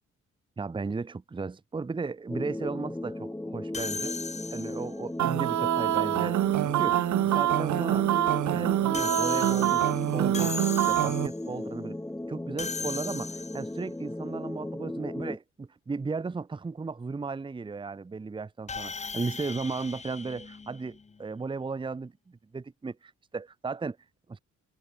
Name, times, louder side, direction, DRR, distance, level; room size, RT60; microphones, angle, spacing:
voice 1, 0.6-4.2 4.5-8.1 8.5-9.8 10.1-10.6 10.9-12.0 12.3-24.0 24.3-24.4, right 4 dB, 15° right, 0.8 m, -35 dB
sound 1, 2.3-15.4, left 1 dB, 5° left, 2.3 m, -36 dB
sound 2, 3.7-5.0 8.9-11.5 12.6-13.8 18.7-21.2, left 4 dB, 25° left, 1.3 m, -37 dB
sound 3, 5.2-11.3, right 13 dB, 80° right, 1.0 m, -25 dB
wide cardioid pair, 150°, 30 cm